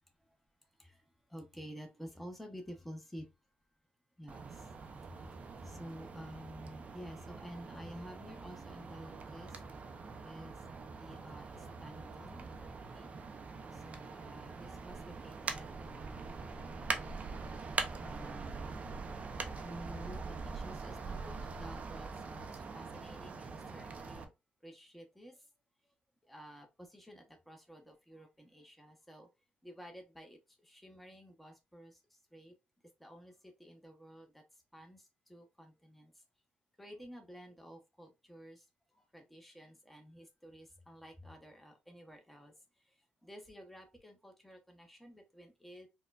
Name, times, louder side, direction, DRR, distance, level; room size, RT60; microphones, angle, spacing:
voice 1, 1.3-3.3 4.2-4.6 5.0-9.6 10.2-10.6 11.0-13.1 13.7-16.2 18.0-18.8 19.6-24.3 24.6-25.4 26.3-29.3 29.6-32.0 32.3-32.5 33.0-34.4 34.7-36.1 36.8-38.6 38.9-42.5 43.2-45.9, equal, 5° left, 0.8 m, -51 dB
sound 1, 4.3-24.2, right 4 dB, 40° right, 0.5 m, -43 dB
4.2 x 2.2 x 2.3 m
cardioid pair, 105°, 4 cm